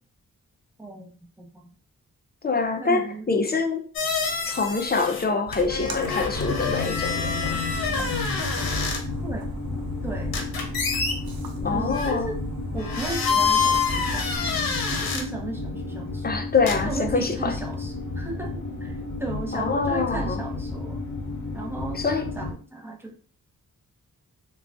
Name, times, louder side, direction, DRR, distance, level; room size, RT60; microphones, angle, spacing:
voice 1, 0.8-1.7 2.8-3.5 9.2-9.5 10.0-10.4 11.6-12.4 12.7-16.3 16.8-21.0 21.5-22.0 22.4-23.2, right 2 dB, 5° right, 0.8 m, -35 dB
voice 2, 2.4-3.8 4.4-7.6 11.6-12.3 16.2-17.5 19.5-20.4 21.9-22.3, left 4 dB, 30° left, 0.5 m, -25 dB
hinge-squeaks, 4.0-5.2 5.5-9.0 10.3-11.2 11.9-12.1 12.8-15.2 16.7-16.8, left 5 dB, 80° left, 0.8 m, -27 dB
Splash splatter, 5.5-14.4, right 2 dB, 85° right, 0.6 m, -38 dB
sound 1, 6.3-22.5, left 3 dB, 55° left, 1.1 m, -32 dB
3.7 x 2.3 x 2.4 m
cardioid pair, 60°, 35 cm